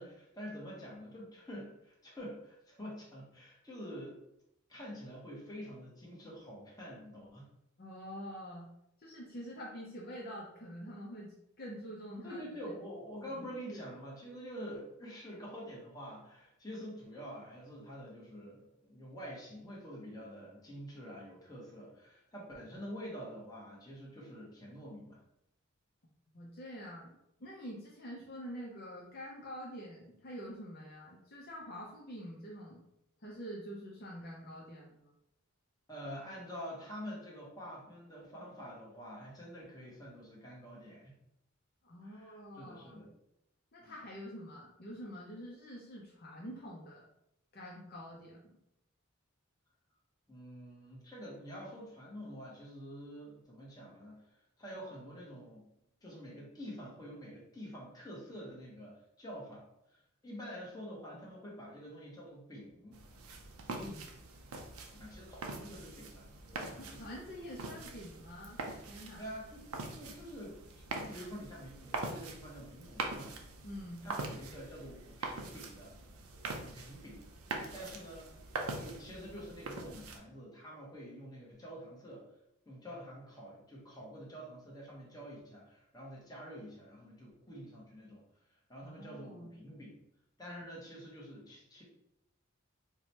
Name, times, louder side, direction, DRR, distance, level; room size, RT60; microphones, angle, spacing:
voice 1, 0.0-4.2 4.7-7.5 12.2-25.2 35.9-41.1 42.0-43.1 43.8-43.9 50.3-54.3 54.6-55.7 56.0-63.0 65.0-67.0 69.2-73.3 74.0-76.0 76.5-77.2 77.7-78.3 78.8-82.2 82.7-88.2 88.7-89.9 90.4-91.8, equal, 20° left, -4 dB, 0.9 m, -47 dB
voice 2, 7.8-8.7 9.0-12.4 13.4-13.9 26.3-32.8 33.2-35.1 41.8-43.0 43.7-47.1 47.5-48.6 60.9-61.0 63.8-64.1 66.8-68.6 68.9-69.2 73.6-74.0 88.8-89.5, equal, 45° left, -4 dB, 0.6 m, -46 dB
sound 1, 62.9-80.2, right 3 dB, 90° right, 0.5 m, -43 dB
4.6 x 2.1 x 2.8 m, 0.80 s
head